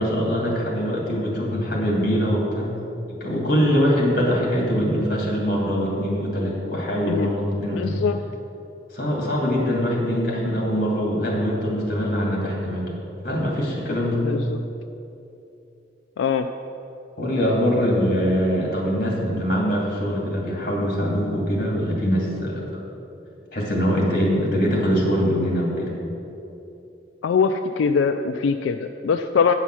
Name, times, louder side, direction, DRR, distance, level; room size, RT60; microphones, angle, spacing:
voice 1, 0.0-2.8 3.1-7.9 8.9-12.9 13.2-14.3 17.2-22.6 23.5-25.9, equal, 50° left, -2 dB, 2.3 m, -23 dB
voice 2, 7.7-8.2 14.2-14.6 16.2-16.5 27.2-29.5, left 5 dB, 90° left, 7 dB, 0.3 m, -22 dB
9.0 x 5.7 x 6.1 m, 2.8 s
head